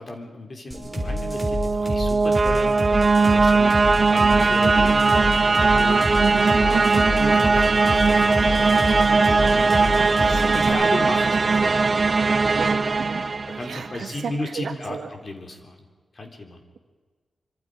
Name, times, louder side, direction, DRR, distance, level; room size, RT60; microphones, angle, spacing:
voice 1, 0.0-3.8 4.1-5.5 5.7-6.3 6.6-9.7 10.2-10.3 10.5-11.9 13.5-15.9 16.1-16.6, left 2 dB, 40° left, 3 dB, 3.7 m, -34 dB
sound 1, 0.7-10.7, left 1 dB, 10° left, 5.7 m, -28 dB
sound 2, 0.9-13.9, right 4 dB, 40° right, 0.9 m, -19 dB
voice 2, 6.2-7.0 10.3-10.8 12.6-13.2 13.7-15.1, right 6 dB, 80° right, 5 dB, 2.4 m, -31 dB
26.5 x 25.5 x 5.1 m, 1.4 s
wide cardioid pair, 120°, 0 cm